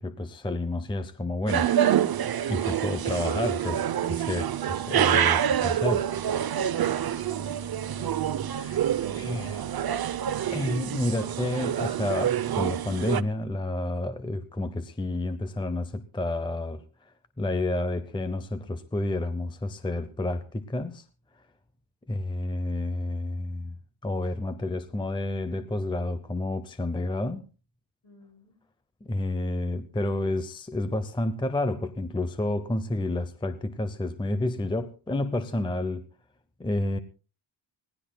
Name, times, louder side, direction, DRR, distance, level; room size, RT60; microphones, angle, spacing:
voice 1, 0.0-2.1 2.5-6.0 8.6-8.9 9.2-9.6 10.5-21.0 21.3-21.5 22.1-23.8 24.0-27.5 29.0-36.1 36.6-37.0, left 2 dB, 10° left, 0.6 m, -30 dB
sound 1, 1.5-13.2, right 10 dB, 50° right, 0.7 m, -27 dB
voice 2, 5.7-8.4 8.9-10.3 28.0-28.6, left 3 dB, 55° left, 7.1 m, -52 dB
26.0 x 17.5 x 2.2 m
wide cardioid pair, 135°, 49 cm